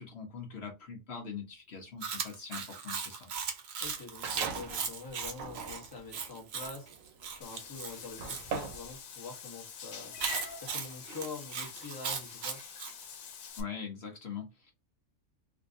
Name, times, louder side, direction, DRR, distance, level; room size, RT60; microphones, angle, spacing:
voice 1, 0.0-3.3 13.6-14.7, left 6 dB, 55° left, 1.0 m, -42 dB
Chewing mastication, 2.0-8.4 10.2-12.9, right 6 dB, 60° right, 0.9 m, -38 dB
voice 2, 3.8-10.2 10.6-12.6, left 4 dB, 20° left, 0.8 m, -45 dB
sound 1, 4.2-4.8 5.3-8.9, right 6 dB, 80° right, 1.1 m, -40 dB
Meow / Water / Bathtub (filling or washing), 7.4-13.6, left 6 dB, 85° left, 1.1 m, -46 dB
3.6 x 2.6 x 2.5 m
omnidirectional pair, 1.4 m